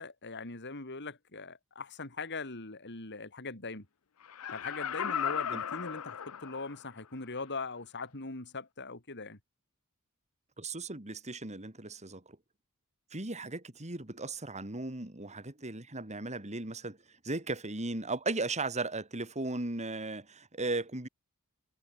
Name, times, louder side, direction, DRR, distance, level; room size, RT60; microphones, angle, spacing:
voice 1, 0.0-3.9 4.5-9.4, left 3 dB, 55° left, 3.7 m, -41 dB
Laughter, 4.2-6.9 7.4-7.5, left 8 dB, 75° left, 0.7 m, -36 dB
voice 2, 10.6-12.4 13.1-21.1, right 2 dB, 30° right, 3.1 m, -36 dB
head